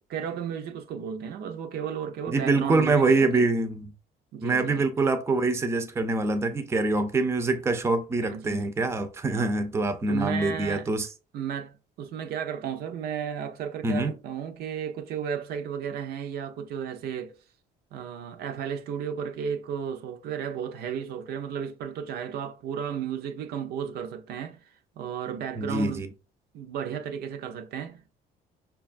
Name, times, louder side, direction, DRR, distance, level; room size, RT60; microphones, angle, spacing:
voice 1, 0.1-3.4 4.3-4.9 8.3-8.6 9.3-9.5 10.1-10.9 11.3-17.3 17.9-26.0 26.5-28.1, right 8 dB, 70° right, 0.5 m, -34 dB
voice 2, 2.3-3.9 4.4-11.1 13.8-14.1 25.6-26.1, right 3 dB, 15° right, 0.5 m, -25 dB
5.0 x 2.3 x 2.4 m
cardioid pair, 110°, 17 cm